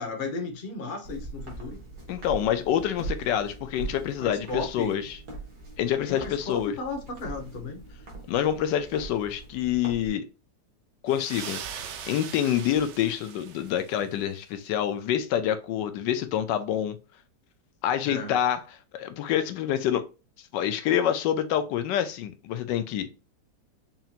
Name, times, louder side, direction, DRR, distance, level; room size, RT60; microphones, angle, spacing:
voice 1, 0.0-1.8 4.2-4.9 6.1-7.8 18.0-18.3, left 3 dB, 35° left, 1.0 m, -35 dB
Walk footsteps, 1.0-10.1, right 3 dB, 65° right, 2.0 m, -41 dB
voice 2, 2.1-5.2 5.8-6.7 8.3-10.3 11.0-11.6 12.1-17.0 17.8-18.6 18.9-20.0 20.5-23.1, left 10 dB, 80° left, 1.2 m, -27 dB
sound 1, 11.1-14.1, right 8 dB, 80° right, 0.6 m, -40 dB
5.5 x 2.8 x 2.4 m
omnidirectional pair, 1.9 m